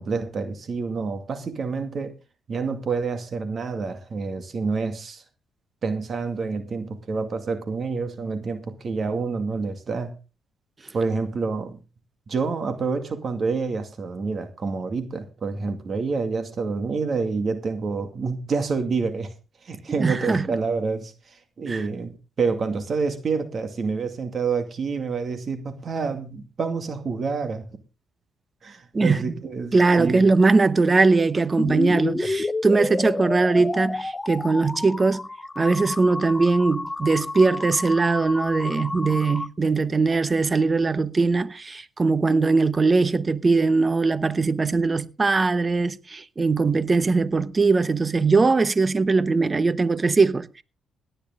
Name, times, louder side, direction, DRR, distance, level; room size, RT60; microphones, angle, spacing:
voice 1, 0.0-2.1 2.5-5.2 5.8-10.2 10.9-11.8 12.3-19.3 19.6-27.7 28.6-30.2, right 4 dB, 45° right, 2.3 m, -28 dB
voice 2, 19.9-20.5 21.7-21.8 28.9-29.2 29.7-35.3 35.6-50.6, right 3 dB, 30° right, 1.0 m, -21 dB
sound 1, 31.6-39.5, left 2 dB, 20° left, 0.9 m, -30 dB
18.0 x 10.0 x 3.7 m
cardioid pair, 90°, 0 cm